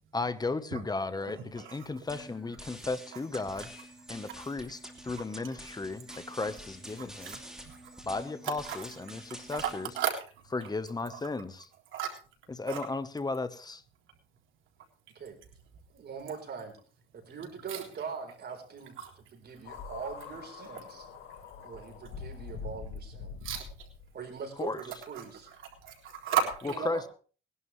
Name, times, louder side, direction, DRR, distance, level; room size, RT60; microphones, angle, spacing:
voice 1, 0.1-3.7 4.1-7.4 8.0-9.9 10.5-11.7 12.5-13.8 24.6-24.8 26.6-27.1, left 3 dB, 20° left, 13 dB, 1.1 m, -35 dB
sound 1, 2.1-10.1, right 1 dB, 5° right, 2.7 m, -48 dB
voice 2, 7.6-8.0 8.6-8.8 9.5-9.7 10.0-10.1 11.1-11.2 11.9-12.1 12.7-12.8 17.7-17.8 19.0-19.1 23.4-23.6 25.1-25.2 25.8-26.6, right 8 dB, 80° right, 0 dB, 3.8 m, -33 dB
voice 3, 15.9-16.8 17.1-21.1 21.6-23.3 24.1-25.5 26.7-27.1, right 6 dB, 55° right, 4 dB, 4.1 m, -42 dB
sound 2, 19.6-24.1 25.0-25.1 26.5-26.6, left 5 dB, 85° left, 1.8 m, -44 dB
19.5 x 11.5 x 3.2 m, 0.39 s
cardioid pair, 90°, 20 cm